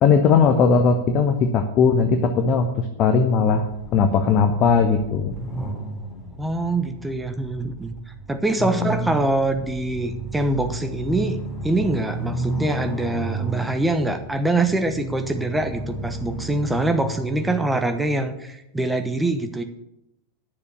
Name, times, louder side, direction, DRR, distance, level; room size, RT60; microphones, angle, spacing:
voice 1, 0.0-5.3 8.8-8.9, left 5 dB, 35° left, 5 dB, 1.0 m, -19 dB
sound 1, 3.5-18.1, right 2 dB, 15° left, 3.7 m, -33 dB
voice 2, 6.4-7.9 8.3-19.6, right 2 dB, 5° right, 7 dB, 1.1 m, -24 dB
9.7 x 6.9 x 8.4 m, 0.86 s
figure-of-eight pair, 90°, 0 cm